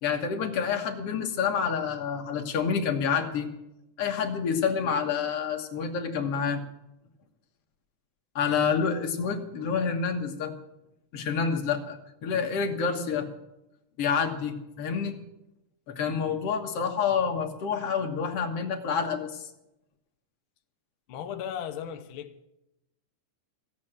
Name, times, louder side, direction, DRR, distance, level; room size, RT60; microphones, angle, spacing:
voice 1, 0.0-3.5 4.0-6.6 8.4-10.5 11.1-13.3 14.0-15.2 15.9-19.5, left 6 dB, 55° left, 2.2 m, -28 dB
voice 2, 21.1-22.5, left 9 dB, 75° left, 1.2 m, -36 dB
15.0 x 8.5 x 8.7 m
omnidirectional pair, 3.4 m